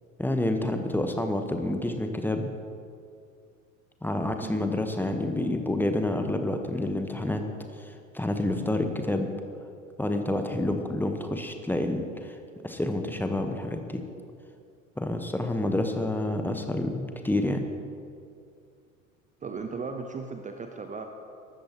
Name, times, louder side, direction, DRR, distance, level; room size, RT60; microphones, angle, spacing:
voice 1, 0.2-2.5 4.0-7.4 7.8-9.3 10.0-12.4 12.6-14.0 15.0-17.6, left 1 dB, 5° left, 5 dB, 1.1 m, -28 dB
voice 2, 19.4-21.1, right 4 dB, 20° right, 5 dB, 0.9 m, -36 dB
22.5 x 13.0 x 3.0 m, 2.4 s
figure-of-eight pair, 75°, 41 cm